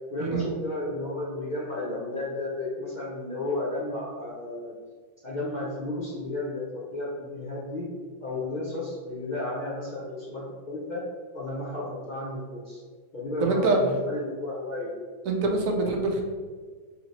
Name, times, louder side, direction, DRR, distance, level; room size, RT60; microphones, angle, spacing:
voice 1, 0.1-4.7 5.2-7.9 8.2-11.0 11.3-12.8 13.1-14.9, left 2 dB, 45° left, -6 dB, 0.6 m, -33 dB
voice 2, 13.4-13.8 15.3-16.2, right 3 dB, 75° right, 1 dB, 1.0 m, -24 dB
3.2 x 2.9 x 4.0 m, 1.5 s
omnidirectional pair, 1.5 m